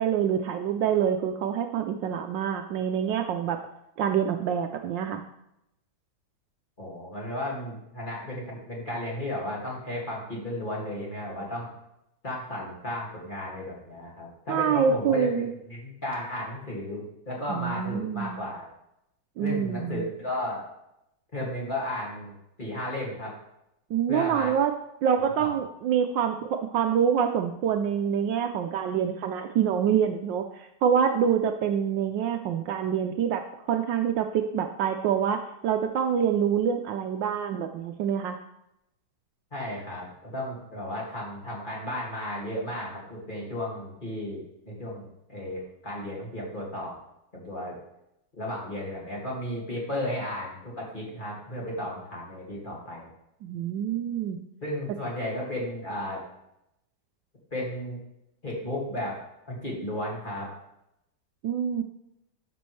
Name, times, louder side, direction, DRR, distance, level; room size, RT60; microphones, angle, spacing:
voice 1, 0.0-3.6 4.0-5.2 14.5-15.5 17.5-18.4 19.4-20.1 23.9-24.7 25.0-33.4 33.7-38.4 53.4-54.4 61.4-61.8, right 8 dB, 75° right, 6 dB, 1.2 m, -26 dB
voice 2, 6.8-11.7 12.2-18.7 19.4-20.7 21.3-22.3 22.6-23.3 24.1-24.5 25.4-25.5 39.5-47.0 47.3-47.8 48.3-53.1 54.6-56.2 57.5-58.0 58.4-59.2 59.5-60.5, left 1 dB, 25° left, -4 dB, 2.1 m, -34 dB
11.0 x 6.1 x 3.2 m, 0.83 s
omnidirectional pair, 2.2 m